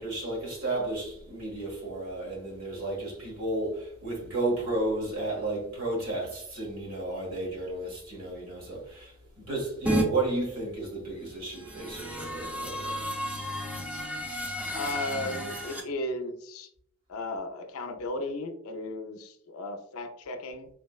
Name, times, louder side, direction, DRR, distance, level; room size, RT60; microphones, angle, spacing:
voice 1, 0.0-13.0, right 2 dB, 85° right, 1.5 m, -33 dB
sound 1, 9.9-10.1 11.4-15.8, equal, 5° right, 0.4 m, -32 dB
voice 2, 14.7-16.7 17.1-20.7, left 2 dB, 75° left, 0.4 m, -35 dB
3.9 x 2.0 x 2.3 m
head